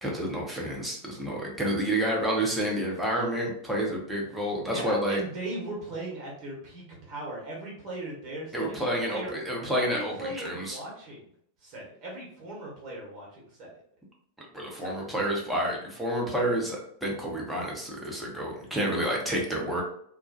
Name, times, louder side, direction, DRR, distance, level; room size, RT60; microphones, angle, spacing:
voice 1, 0.0-5.2 8.5-10.8 14.5-19.8, right 1 dB, 5° right, -3 dB, 0.7 m, -29 dB
voice 2, 4.7-9.3 9.7-11.3 11.6-13.7 14.8-15.0, right 1 dB, 40° right, -4 dB, 0.9 m, -38 dB
2.2 x 2.2 x 2.6 m, 0.67 s
figure-of-eight pair, 90°, 0 cm